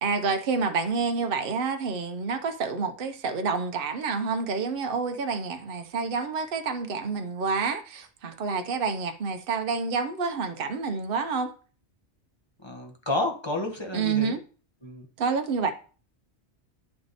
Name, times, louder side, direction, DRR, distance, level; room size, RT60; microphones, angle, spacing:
voice 1, 0.0-11.5 13.9-14.4 15.2-15.7, right 5 dB, 55° right, 1.0 m, -28 dB
voice 2, 12.6-14.4 14.8-15.1, left 2 dB, 25° left, 1.2 m, -30 dB
9.7 x 4.6 x 4.1 m
omnidirectional pair, 1.2 m